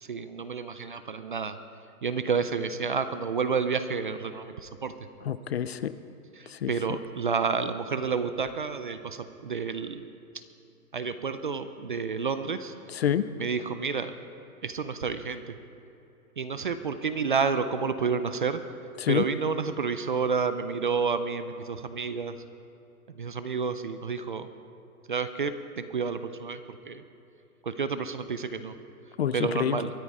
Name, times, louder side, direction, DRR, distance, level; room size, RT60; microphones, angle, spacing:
voice 1, 0.0-1.6 2.0-4.9 6.4-10.0 10.9-12.7 13.4-14.1 14.6-15.6 16.4-18.6 19.1-22.3 23.1-24.5 25.1-26.6 26.9-27.0 27.6-28.7 29.3-29.9, right 5 dB, 40° right, 11 dB, 0.4 m, -30 dB
voice 2, 5.3-5.9 6.5-6.7 12.9-13.2 19.0-19.2 29.2-29.8, left 9 dB, 45° left, 14 dB, 0.4 m, -27 dB
22.5 x 9.4 x 4.8 m, 2.8 s
hypercardioid pair, 165°, 44 cm